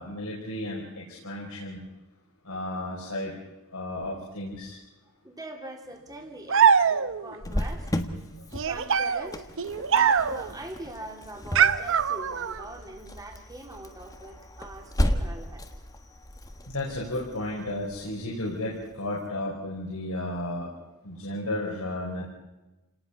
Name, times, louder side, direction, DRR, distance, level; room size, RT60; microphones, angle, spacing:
voice 1, 0.0-1.8 2.4-3.3 3.7-4.8 16.7-20.7 21.0-22.2, left 1 dB, 90° left, -4 dB, 4.7 m, -33 dB
voice 2, 5.2-7.9 8.7-9.4 9.8-15.6, right 1 dB, 20° right, 2 dB, 3.1 m, -41 dB
sound 1, 6.5-7.3 8.5-10.5 11.5-12.6, right 7 dB, 65° right, 0.7 m, -23 dB
Cricket, 7.4-18.9, equal, 15° left, 1.4 m, -34 dB
29.5 x 18.5 x 5.7 m, 1.0 s
head